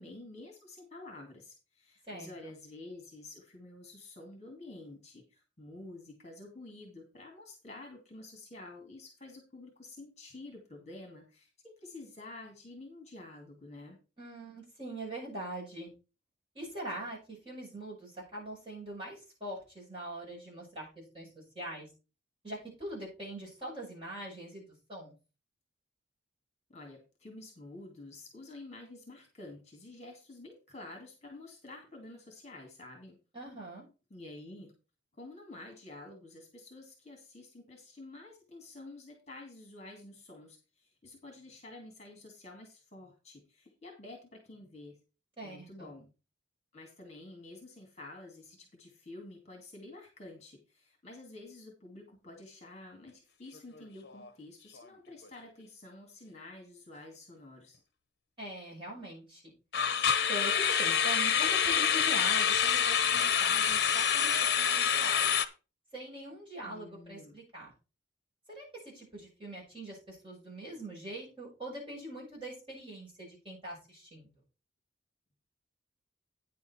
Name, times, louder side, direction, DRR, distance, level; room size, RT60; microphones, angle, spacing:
voice 1, 0.0-14.0 26.7-33.2 34.1-34.7 35.1-45.0 45.4-46.1 46.7-57.8 66.6-67.4, left 2 dB, 35° left, 2 dB, 2.4 m, -49 dB
voice 2, 2.1-2.5 14.2-15.9 16.5-21.9 22.4-25.1 33.3-33.8 45.4-45.9 58.4-59.5 60.1-65.3 65.9-67.7 68.5-74.3, right 1 dB, 25° right, -4 dB, 6.4 m, -43 dB
sound 1, 53.6-53.8 54.1-54.3 54.8-54.9 59.7-65.5, left 8 dB, 55° left, 0.8 m, -27 dB
9.6 x 7.0 x 4.4 m, 0.31 s
head